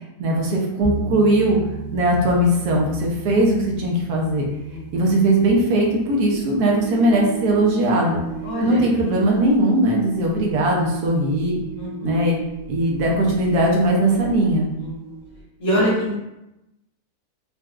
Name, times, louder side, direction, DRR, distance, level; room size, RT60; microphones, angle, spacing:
voice 1, 0.2-1.6 1.9-4.5 4.9-8.2 8.6-11.6 12.0-12.4 12.7-14.7, right 1 dB, 75° right, -1 dB, 1.1 m, -19 dB
sound 1, 0.8-9.0, right 1 dB, 45° right, 1.0 m, -37 dB
voice 2, 4.7-5.1 8.4-8.8 11.8-12.3 14.8-15.1 15.6-16.1, equal, 60° left, -7 dB, 1.6 m, -24 dB
sound 2, 6.3-15.4, right 7 dB, 35° left, 1.2 m, -36 dB
4.0 x 2.2 x 2.3 m, 0.93 s
omnidirectional pair, 1.8 m